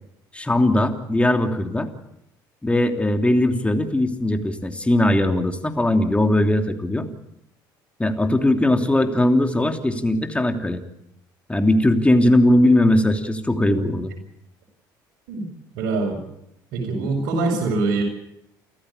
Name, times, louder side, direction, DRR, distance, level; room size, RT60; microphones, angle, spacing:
voice 1, 0.3-1.9 2.6-7.1 8.0-10.8 11.5-14.1, left 1 dB, 10° left, 5 dB, 3.0 m, -19 dB
voice 2, 15.7-16.2 16.7-18.0, right 3 dB, 70° right, -2 dB, 5.8 m, -23 dB
29.0 x 15.0 x 8.3 m, 0.81 s
hypercardioid pair, 65°, 10 cm